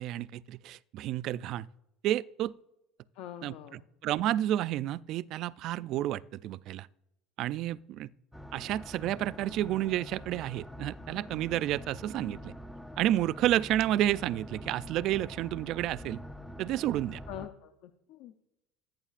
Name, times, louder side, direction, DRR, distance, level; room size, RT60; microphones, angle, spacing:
voice 1, 0.0-1.7 2.0-2.5 3.4-3.5 4.0-6.9 7.4-8.1 8.5-12.5 13.0-16.2 16.6-17.2, right 13 dB, 55° right, 0.3 m, -30 dB
voice 2, 3.1-3.9 17.3-18.4, left 11 dB, 70° left, 0.6 m, -44 dB
sound 1, 8.3-17.5, equal, ahead, 0.5 m, -45 dB
16.5 x 8.9 x 2.5 m
supercardioid pair, 125°, 0 cm